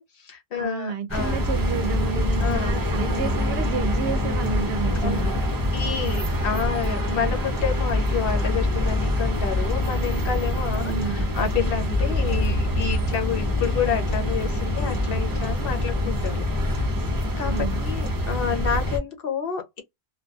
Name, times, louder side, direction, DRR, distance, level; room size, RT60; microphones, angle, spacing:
voice 1, 0.0-1.4 2.4-2.8 5.0-16.9 17.4-19.8, left 7 dB, 65° left, 1.0 m, -29 dB
voice 2, 0.6-5.4 10.8-11.3 17.4-17.8, right 6 dB, 70° right, 0.8 m, -30 dB
sound 1, 1.1-19.0, left 1 dB, 25° right, 0.6 m, -25 dB
2.3 x 2.2 x 2.6 m
omnidirectional pair, 1.1 m